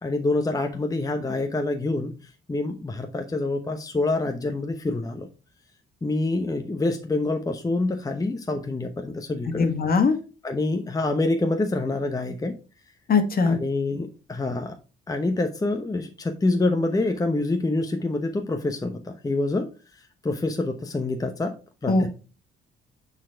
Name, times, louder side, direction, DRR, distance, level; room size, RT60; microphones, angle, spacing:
voice 1, 0.0-2.1 2.5-5.3 6.0-9.7 10.4-12.5 13.4-14.7 15.1-19.7 20.2-21.5 21.8-22.1, left 2 dB, 20° left, 5 dB, 0.9 m, -26 dB
voice 2, 9.5-10.2 13.1-13.6 21.9-22.0, left 4 dB, 50° left, 7 dB, 1.7 m, -20 dB
9.1 x 4.2 x 4.5 m, 0.34 s
cardioid pair, 90°, 20 cm